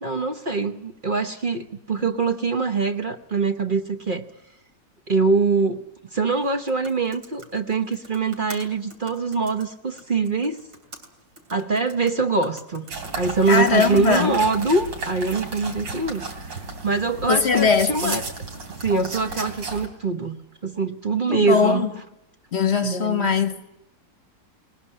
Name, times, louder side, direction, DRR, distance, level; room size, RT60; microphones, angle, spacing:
voice 1, 0.0-4.3 5.1-5.8 6.1-10.6 11.5-16.5 16.8-18.2 18.8-21.9 22.8-23.3, right 4 dB, 40° right, 0.8 m, -24 dB
sound 1, 6.3-16.8, right 2 dB, 70° right, 3.7 m, -48 dB
sound 2, 12.9-19.9, right 3 dB, 85° right, 3.7 m, -34 dB
voice 2, 13.5-14.3 17.3-18.2 21.3-21.9 22.5-23.6, left 5 dB, 40° left, 1.2 m, -20 dB
20.5 x 20.0 x 9.9 m
omnidirectional pair, 2.0 m